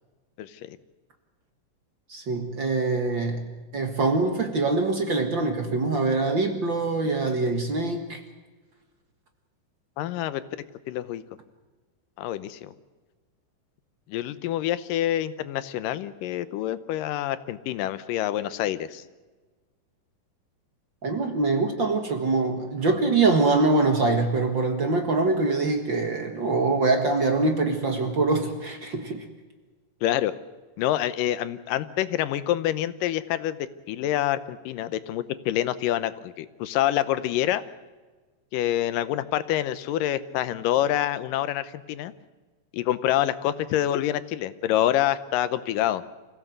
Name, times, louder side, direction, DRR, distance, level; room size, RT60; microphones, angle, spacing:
voice 1, 0.4-0.8 10.0-10.4 10.9-11.2 12.2-12.7 14.1-19.0 30.0-30.3 30.8-33.6 33.9-37.6 38.5-42.1 42.7-46.0, left 12 dB, 85° left, 15 dB, 2.5 m, -26 dB
voice 2, 2.1-8.2 21.0-29.2, right 3 dB, 45° right, 4 dB, 1.9 m, -24 dB
25.5 x 16.0 x 7.9 m, 1.3 s
omnidirectional pair, 3.8 m